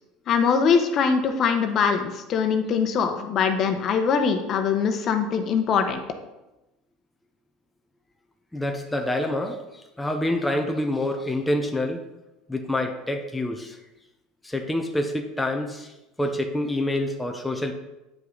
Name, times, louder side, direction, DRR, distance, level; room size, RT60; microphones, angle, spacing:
voice 1, 0.3-6.0, left 6 dB, 45° left, 6 dB, 1.0 m, -22 dB
voice 2, 8.5-12.0 12.5-13.8 14.4-17.7, left 1 dB, 5° left, 3 dB, 0.8 m, -27 dB
9.3 x 5.7 x 4.0 m, 0.97 s
supercardioid pair, 115°, 0 cm